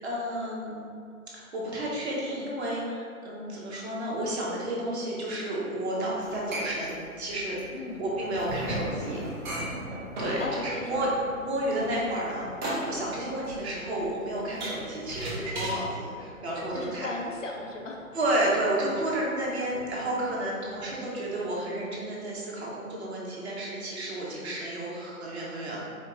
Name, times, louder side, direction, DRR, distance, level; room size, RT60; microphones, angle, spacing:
voice 1, 0.0-0.7 1.3-7.6 8.0-9.2 9.5-9.8 10.2-11.1 11.4-17.1 18.1-25.8, right 1 dB, 45° right, -5 dB, 1.3 m, -31 dB
sound 1, 6.2-15.8, equal, 30° right, 1.0 m, -36 dB
Thunder / Rain, 7.6-22.0, right 1 dB, ahead, 1.5 m, -44 dB
voice 2, 7.7-8.0 10.4-11.1 16.7-18.2, left 2 dB, 60° left, 0 dB, 0.7 m, -37 dB
4.4 x 2.8 x 3.8 m, 2.4 s
hypercardioid pair, 155°, 44 cm